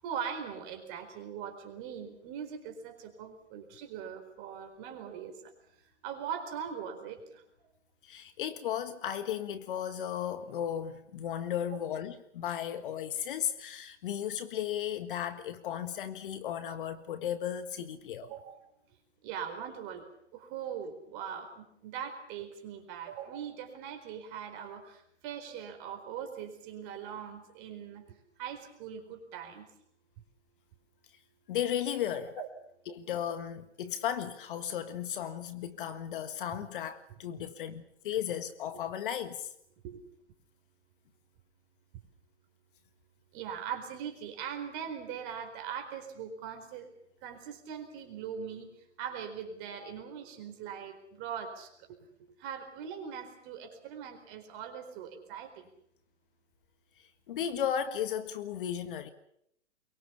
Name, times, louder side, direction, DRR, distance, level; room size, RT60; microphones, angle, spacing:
voice 1, 0.0-5.5 6.0-7.4 18.2-18.6 19.2-20.1 20.3-28.0 28.4-29.7 32.1-32.5 39.8-40.0 43.3-46.9 47.2-48.7 49.0-52.0 52.4-55.7, right 8 dB, 30° right, 4.4 m, -41 dB
voice 2, 8.0-18.3 31.5-32.3 32.9-39.5 57.3-59.1, left 9 dB, 45° left, 1.7 m, -35 dB
23.0 x 22.5 x 7.1 m
hypercardioid pair, 140°, 36 cm